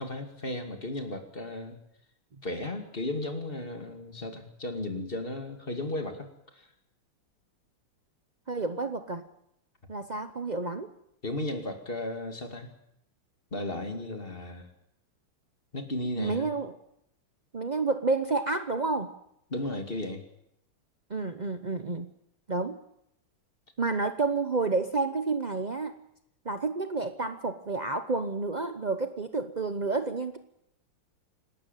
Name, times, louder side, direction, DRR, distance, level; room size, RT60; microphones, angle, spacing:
voice 1, 0.0-1.8 2.4-6.3 6.5-6.7 11.2-12.7 13.5-14.7 15.7-16.5 19.5-20.2, left 2 dB, 25° left, 6 dB, 2.5 m, -35 dB
voice 2, 8.5-9.3 9.9-10.9 16.2-16.7 17.5-19.1 21.1-22.1 22.5-22.8 23.8-26.0 26.4-30.4, right 3 dB, 90° right, 9 dB, 0.3 m, -30 dB
27.0 x 12.5 x 9.2 m, 0.76 s
omnidirectional pair, 2.3 m